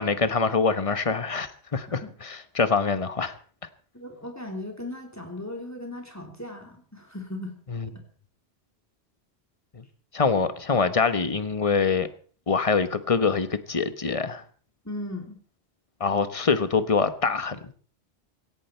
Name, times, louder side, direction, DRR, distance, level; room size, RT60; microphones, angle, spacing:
voice 1, 0.0-3.4 7.7-7.9 9.7-9.8 10.1-12.1 12.5-14.4 16.0-17.8, left 5 dB, 35° left, 1.2 m, -25 dB
voice 2, 3.9-7.6 14.8-15.4, left 1 dB, 15° left, 3.3 m, -37 dB
17.0 x 17.0 x 4.5 m
omnidirectional pair, 1.1 m